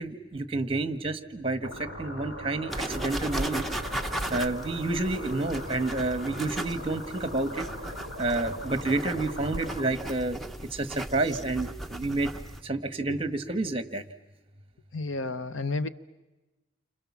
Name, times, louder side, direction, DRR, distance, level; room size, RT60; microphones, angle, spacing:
voice 1, 0.0-3.7 4.3-7.6 8.2-10.4 10.7-12.3 12.6-14.0, right 2 dB, 30° right, 10 dB, 1.5 m, -29 dB
sound 1, 1.6-9.9, left 1 dB, 85° left, 5.7 m, -41 dB
sound 2, 2.7-12.6, right 1 dB, ahead, 1.0 m, -36 dB
voice 2, 14.9-15.9, left 3 dB, 70° left, 13 dB, 0.9 m, -31 dB
29.5 x 26.0 x 7.4 m, 1.1 s
head